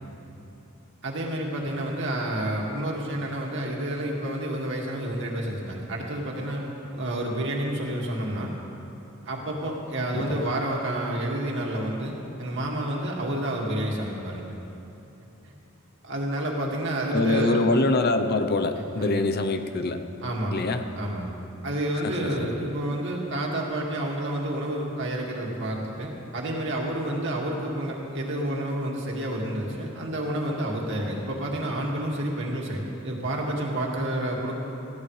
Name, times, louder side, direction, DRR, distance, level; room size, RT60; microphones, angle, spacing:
voice 1, 1.0-6.6 6.9-8.5 9.2-14.4 15.4-15.5 16.0-17.7 19.0-19.1 20.2-20.6 21.0-21.3 21.6-34.5, right 1 dB, 60° right, -2 dB, 2.1 m, -29 dB
voice 2, 17.1-20.0 20.5-20.8 21.9-22.4, left 2 dB, 45° left, 7 dB, 0.7 m, -24 dB
20.0 x 15.5 x 3.3 m, 2.9 s
head